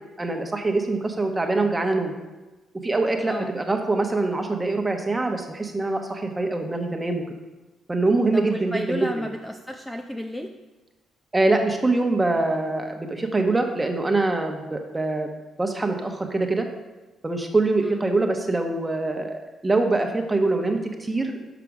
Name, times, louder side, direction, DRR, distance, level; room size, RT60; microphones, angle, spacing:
voice 1, 0.2-2.1 2.8-7.2 7.9-9.3 11.3-16.7 17.2-21.4, right 2 dB, 20° right, 4 dB, 1.0 m, -24 dB
voice 2, 8.3-10.5 17.8-18.0, equal, 5° left, 3 dB, 0.5 m, -32 dB
6.0 x 5.0 x 6.0 m, 1.2 s
cardioid pair, 90°, 0 cm